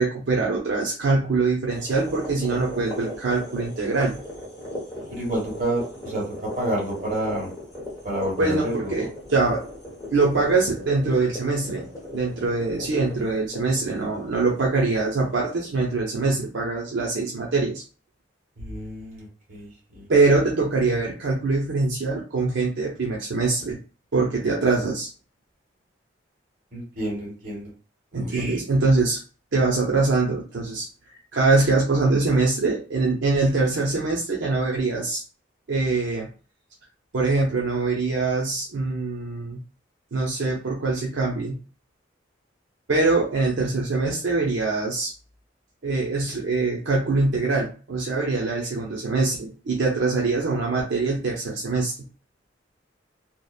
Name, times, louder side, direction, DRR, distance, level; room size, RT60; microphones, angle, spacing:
voice 1, 0.0-4.1 8.4-9.6 10.1-11.9 12.1-17.8 20.1-23.8 24.1-25.1 28.1-29.2 29.5-30.9 31.3-35.2 35.7-36.3 37.1-39.6 40.1-41.6 42.9-45.1 45.8-51.9, right 3 dB, 75° right, -2 dB, 0.5 m, -23 dB
sound 1, 1.7-15.9, left 1 dB, 15° left, 0.9 m, -38 dB
voice 2, 5.1-7.5 8.0-9.1 18.6-20.0 26.7-27.7 28.2-28.6, right 1 dB, 45° right, -2 dB, 1.3 m, -29 dB
2.7 x 2.0 x 2.3 m, 0.37 s
head